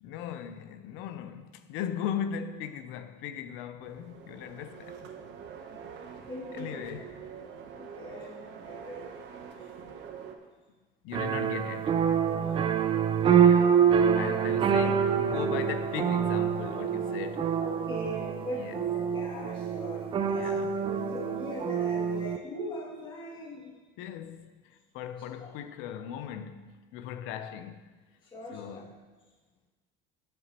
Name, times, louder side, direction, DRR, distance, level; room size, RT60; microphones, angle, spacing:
voice 1, 0.0-5.1 6.5-7.1 11.0-12.0 13.4-17.6 18.5-18.9 20.3-20.8 24.0-28.0 28.5-29.0, left 9 dB, 75° left, 0.7 m, -38 dB
sound 1, 3.8-10.4, right 7 dB, 60° right, 1.0 m, -45 dB
voice 2, 6.3-7.0 7.4-7.5 7.8-9.0 12.3-12.7 17.6-23.7 25.4-25.5 28.2-28.8, equal, 25° left, 2.4 m, -40 dB
sound 2, 11.1-22.4, right 7 dB, 25° right, 0.4 m, -26 dB
12.0 x 7.8 x 3.0 m
cardioid pair, 150°, 21 cm